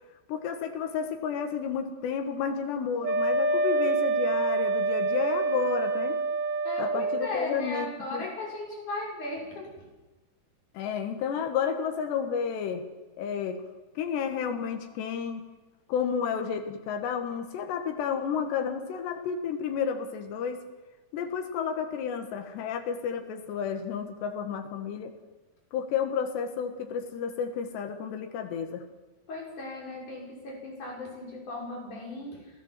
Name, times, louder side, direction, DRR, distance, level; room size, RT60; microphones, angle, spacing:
voice 1, 0.3-6.2 6.8-8.3 10.7-12.8 13.2-13.6 14.0-15.4 15.9-20.6 21.1-25.1 25.7-28.8, left 7 dB, 80° left, 5 dB, 3.9 m, -31 dB
Wind instrument woodwind instrument, 3.0-7.3, right 3 dB, 80° right, 1.3 m, -26 dB
voice 2, 6.6-9.9 29.3-32.5, left 2 dB, 45° left, -1 dB, 7.4 m, -37 dB
28.0 x 16.0 x 7.6 m, 1.1 s
omnidirectional pair, 4.8 m